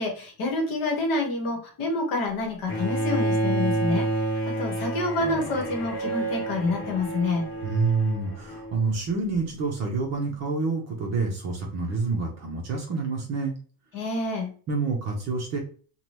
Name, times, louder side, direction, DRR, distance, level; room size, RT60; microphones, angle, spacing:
voice 1, 0.0-7.4 13.9-14.5, left 2 dB, 45° left, 1 dB, 1.1 m, -28 dB
Bowed string instrument, 2.7-8.8, right 1 dB, 25° left, 0.8 m, -29 dB
voice 2, 7.6-13.6 14.7-15.6, right 4 dB, 35° right, 1 dB, 0.6 m, -27 dB
2.8 x 2.2 x 3.2 m, 0.40 s
cardioid pair, 160°, 47 cm